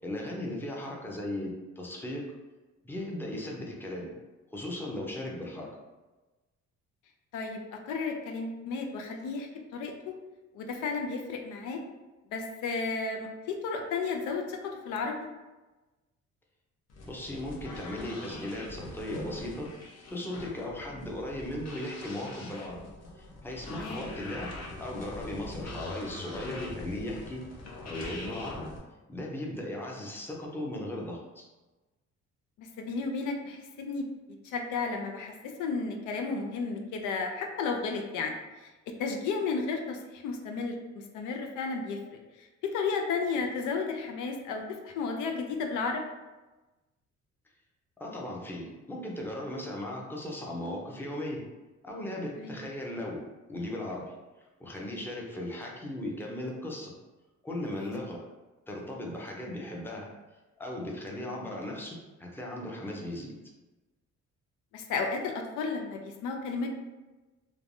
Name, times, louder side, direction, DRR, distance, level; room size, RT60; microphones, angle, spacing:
voice 1, 0.0-2.2 2.8-4.1 4.5-5.7 17.0-19.7 20.1-22.8 23.1-24.5 24.8-27.4 27.8-28.7 29.1-31.5 48.0-51.4 51.8-53.2 53.5-54.1 54.6-56.9 57.4-58.2 58.7-60.1 60.6-63.3, left 1 dB, 5° left, -2 dB, 0.6 m, -37 dB
voice 2, 7.9-10.1 10.5-11.8 12.3-15.2 23.7-24.0 32.6-34.0 34.4-35.3 35.6-38.3 38.6-38.7 39.0-40.8 41.1-42.0 42.6-46.0 52.4-52.6 57.7-57.9 64.7-66.7, left 4 dB, 90° left, 3 dB, 0.5 m, -33 dB
sound 1, 16.9-28.8, left 2 dB, 55° left, 0.8 m, -43 dB
3.2 x 2.2 x 2.5 m, 1.2 s
cardioid pair, 90°, 30 cm